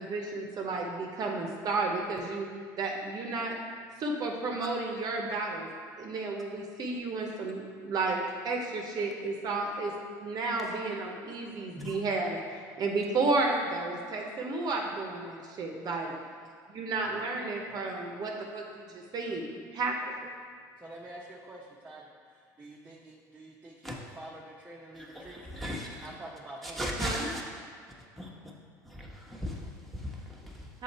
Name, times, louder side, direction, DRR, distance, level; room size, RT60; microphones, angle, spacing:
voice 1, 0.0-2.5 2.8-3.6 4.0-5.7 6.0-9.9 10.2-16.1 16.8-20.1 27.0-27.3 30.7-30.8, right 3 dB, 45° right, 1 dB, 0.8 m, -32 dB
voice 2, 17.0-17.9 20.8-25.6 25.9-26.9, right 1 dB, 15° right, -4 dB, 0.8 m, -48 dB
voice 3, 24.9-26.1 26.6-27.4 28.2-28.5 28.8-30.7, equal, ahead, -3 dB, 1.1 m, -38 dB
6.5 x 4.0 x 4.2 m, 2.1 s
supercardioid pair, 85°, 10 cm